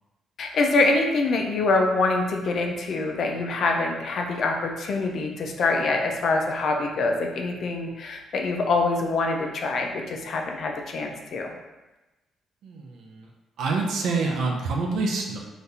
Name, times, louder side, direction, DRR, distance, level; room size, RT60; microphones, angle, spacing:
voice 1, 0.4-11.5, left 3 dB, 60° left, 2 dB, 0.4 m, -25 dB
voice 2, 12.6-13.3 13.6-15.4, right 3 dB, 80° right, 0 dB, 0.5 m, -27 dB
3.8 x 2.5 x 2.8 m, 1.1 s
cardioid pair, 90°, 0 cm